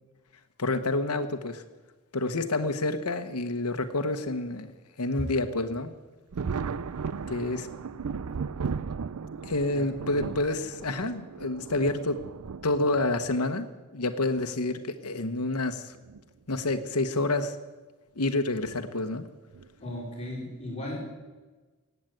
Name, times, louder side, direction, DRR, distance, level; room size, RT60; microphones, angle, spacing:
voice 1, 0.6-1.6 2.1-4.7 5.0-5.9 7.3-7.7 9.5-12.2 12.6-15.9 16.5-17.6 18.2-19.2, left 2 dB, 90° left, 8 dB, 1.2 m, -28 dB
Thunder, 6.3-13.4 14.4-14.5 15.9-16.2 16.6-16.7 18.6-18.8 19.5-19.9, right 5 dB, 80° right, 0.5 m, -36 dB
voice 2, 9.7-10.3 19.8-21.2, left 1 dB, 30° left, -3 dB, 4.6 m, -37 dB
17.0 x 8.2 x 9.3 m, 1.2 s
head